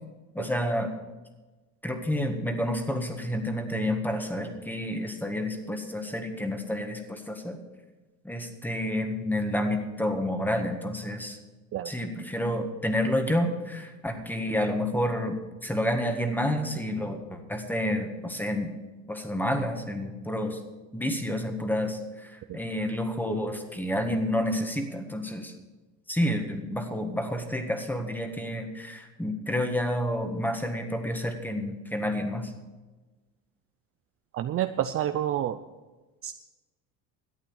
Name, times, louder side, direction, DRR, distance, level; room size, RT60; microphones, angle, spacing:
voice 1, 0.3-0.9 1.8-7.6 8.2-11.4 11.8-15.4 15.6-18.7 19.1-20.6 20.9-25.5 26.1-32.5, left 1 dB, 5° left, 6 dB, 1.7 m, -29 dB
voice 2, 34.3-35.6 36.2-36.3, right 11 dB, 35° right, 9 dB, 0.5 m, -29 dB
12.0 x 8.6 x 7.3 m, 1.2 s
supercardioid pair, 100°, 39 cm